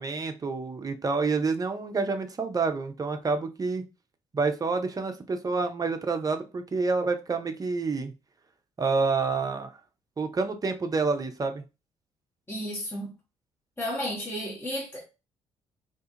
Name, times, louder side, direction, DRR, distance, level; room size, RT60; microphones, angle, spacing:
voice 1, 0.0-3.9 4.3-8.1 8.8-9.7 10.2-11.6, right 4 dB, 25° right, 0.5 m, -28 dB
voice 2, 12.5-13.1 13.8-15.0, equal, 15° left, 1.0 m, -33 dB
2.5 x 2.3 x 2.7 m
figure-of-eight pair, 45°, 15 cm